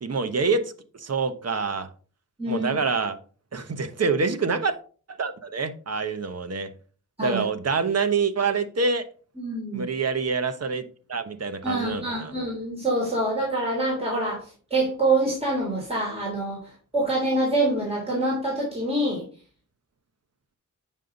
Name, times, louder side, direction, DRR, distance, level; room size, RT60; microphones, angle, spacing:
voice 1, 0.0-1.9 2.5-3.2 3.5-4.7 5.1-6.7 7.2-9.1 9.7-12.3, right 4 dB, 50° right, 10 dB, 1.0 m, -26 dB
voice 2, 2.4-2.8 7.2-7.4 9.4-9.8 11.6-19.2, right 2 dB, 20° right, -4 dB, 3.2 m, -26 dB
9.1 x 5.5 x 3.9 m, 0.41 s
wide cardioid pair, 85°, 32 cm